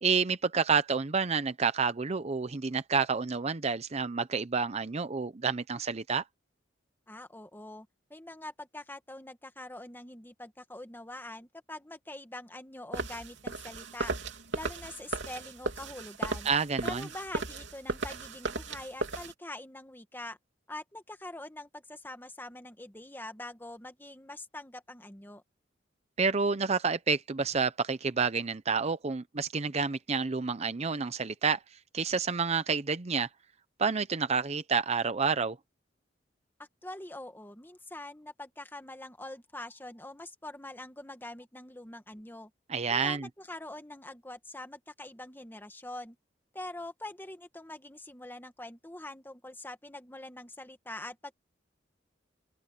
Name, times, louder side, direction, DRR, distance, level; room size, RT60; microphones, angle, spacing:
voice 1, 0.0-6.2 16.5-17.1 26.2-31.6 31.9-33.3 33.8-35.6 42.7-43.3, right 5 dB, 35° right, 0.6 m, -29 dB
voice 2, 7.1-14.1 14.5-16.5 16.8-20.4 20.7-25.4 36.6-42.5 42.9-46.2 46.5-51.3, left 1 dB, 10° left, 1.8 m, -44 dB
sound 1, 12.9-19.3, right 3 dB, 75° right, 3.2 m, -36 dB
open air
head